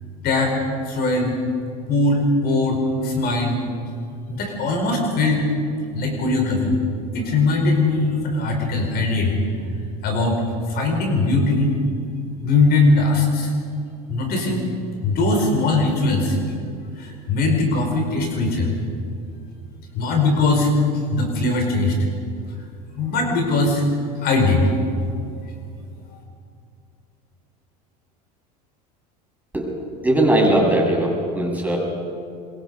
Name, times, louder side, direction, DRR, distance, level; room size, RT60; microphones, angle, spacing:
voice 1, 0.2-0.6 0.8-1.4 1.9-3.6 4.3-5.5 5.9-6.8 7.1-9.3 10.0-10.4 10.7-11.8 12.4-13.5 14.1-14.7 15.0-16.4 17.0-18.7 19.9-20.7 21.1-21.9 23.0-23.8 24.2-24.7, left 2 dB, 50° left, 2 dB, 4.7 m, -20 dB
voice 2, 30.0-31.8, right 1 dB, 10° right, -2 dB, 7.4 m, -19 dB
26.0 x 22.5 x 5.4 m, 2.4 s
hypercardioid pair, 95°, 20 cm